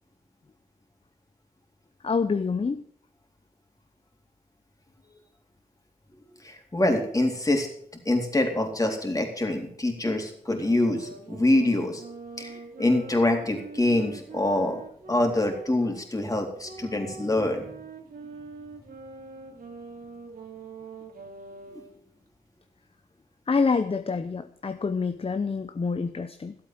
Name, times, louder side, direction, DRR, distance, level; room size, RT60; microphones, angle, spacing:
voice 1, 2.0-2.8 23.5-26.6, left 4 dB, 35° left, 9 dB, 0.9 m, -27 dB
voice 2, 6.4-7.7 8.1-12.0 12.4-14.8 15.1-17.7, left 1 dB, 20° left, 3 dB, 3.7 m, -25 dB
sound 1, 10.5-16.0 16.6-22.0, right 4 dB, 75° right, 2.8 m, -43 dB
12.5 x 8.2 x 7.5 m, 0.63 s
cardioid pair, 55°, 15 cm